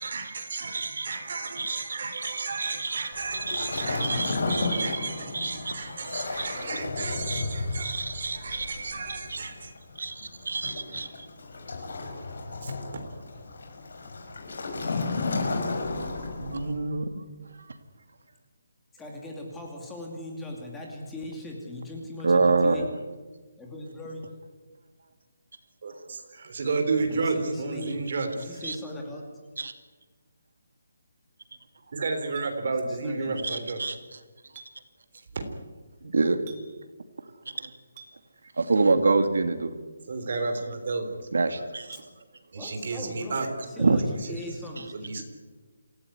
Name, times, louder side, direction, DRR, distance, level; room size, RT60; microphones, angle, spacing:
voice 1, 0.0-9.7 12.6-12.7 25.8-28.6 31.9-33.8 35.3-35.4 40.1-41.1 42.5-43.5 44.9-45.2, right 4 dB, 40° right, 3.6 m, -32 dB
voice 2, 0.7-1.1 1.6-3.1 3.5-5.8 6.4-6.5 7.3-8.8 9.3-9.4 10.0-11.1 16.4-17.2 22.2-22.9 28.6-28.7 29.6-29.7 33.4-34.0 36.1-36.4 37.5-37.7 38.6-39.7 41.3-42.0 43.8-44.0, right 3 dB, 75° right, 2.5 m, -27 dB
Waves surf, 3.1-16.8, left 3 dB, 55° left, 5.9 m, -33 dB
voice 3, 18.9-22.9 23.6-24.4 27.0-28.0 28.4-29.5 32.8-33.6 41.9-42.0 42.5-45.2, left 1 dB, 5° left, 2.5 m, -39 dB
Chink clink, 32.4-32.5 34.5-34.7 36.5-36.7 38.0-38.1, right 7 dB, 15° right, 2.4 m, -47 dB
27.0 x 16.5 x 9.6 m
hypercardioid pair, 180°, 0 cm